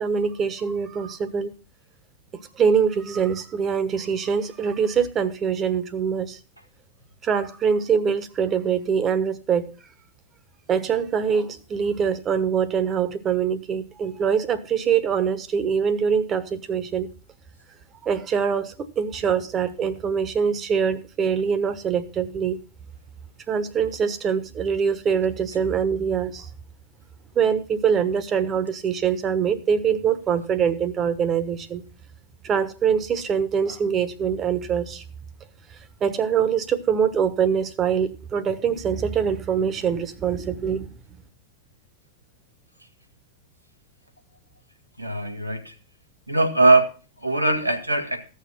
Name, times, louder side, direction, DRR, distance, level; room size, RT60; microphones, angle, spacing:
voice 1, 0.0-1.5 2.3-6.4 7.2-9.7 10.7-17.1 18.0-22.6 23.5-26.5 27.3-31.8 32.4-35.0 35.7-40.9, right 7 dB, 25° right, 1.2 m, -24 dB
voice 2, 45.0-45.7 46.3-48.3, right 2 dB, 90° right, 1.6 m, -21 dB
15.0 x 6.5 x 5.8 m
figure-of-eight pair, 90°, 0 cm